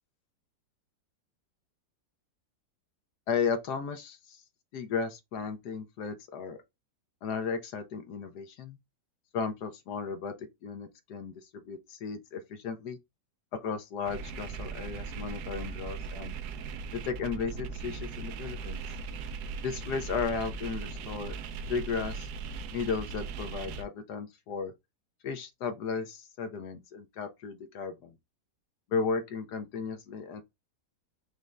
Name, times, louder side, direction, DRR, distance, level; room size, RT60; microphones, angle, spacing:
voice 1, 3.3-4.4 4.7-6.6 7.2-8.8 9.3-10.3 10.6-13.0 13.6-16.4 16.9-18.8 19.6-21.3 21.7-22.3 22.7-24.7 25.2-28.1 28.9-30.4, left 5 dB, 65° left, 1.2 m, -34 dB
sound 1, 14.1-23.8, right 5 dB, 70° right, 1.0 m, -39 dB
5.3 x 2.4 x 3.2 m
omnidirectional pair, 2.0 m